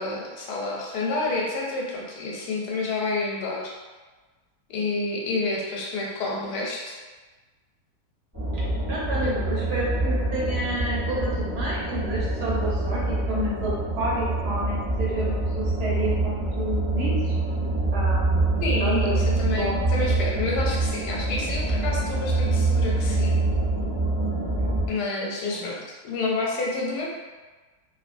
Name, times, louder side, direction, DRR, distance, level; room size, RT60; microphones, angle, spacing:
voice 1, 0.0-3.7 4.7-7.0 18.6-23.4 24.9-25.8 26.0-27.1, left 3 dB, 90° left, -2 dB, 1.2 m, -29 dB
sound 1, 8.3-24.9, right 2 dB, 20° right, 0.6 m, -25 dB
voice 2, 8.9-17.3 17.9-19.7 24.3-24.8 25.5-25.7, right 1 dB, 75° right, -6 dB, 1.5 m, -30 dB
2.8 x 2.5 x 2.5 m, 1.3 s
omnidirectional pair, 1.7 m